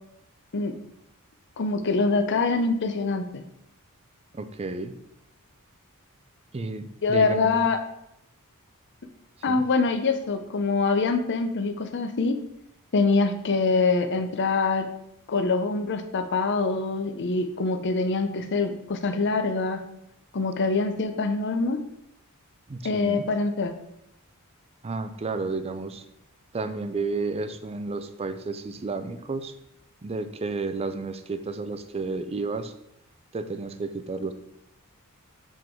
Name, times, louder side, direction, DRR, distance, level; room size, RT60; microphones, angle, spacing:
voice 1, 1.6-3.4 7.0-7.8 9.4-12.4 12.9-14.9 15.3-19.8 20.3-21.8 22.8-23.8, left 3 dB, 55° left, 8 dB, 0.7 m, -24 dB
voice 2, 4.3-5.0 6.5-7.6 9.5-9.6 22.7-23.2 24.8-26.0 26.5-29.5 30.0-32.7 33.3-34.3, right 3 dB, 25° right, 10 dB, 0.4 m, -32 dB
7.3 x 3.8 x 4.5 m, 0.80 s
head